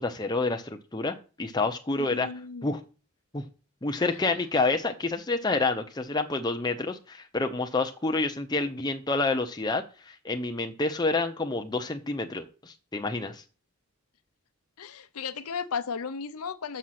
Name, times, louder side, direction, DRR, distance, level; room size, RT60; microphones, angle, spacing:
voice 1, 0.0-2.3 2.6-2.8 3.3-3.4 3.8-13.4, left 3 dB, 20° left, 0.7 m, -28 dB
voice 2, 2.0-2.7 4.1-4.4 14.8-16.8, left 6 dB, 80° left, 0.7 m, -35 dB
6.5 x 6.3 x 5.9 m
head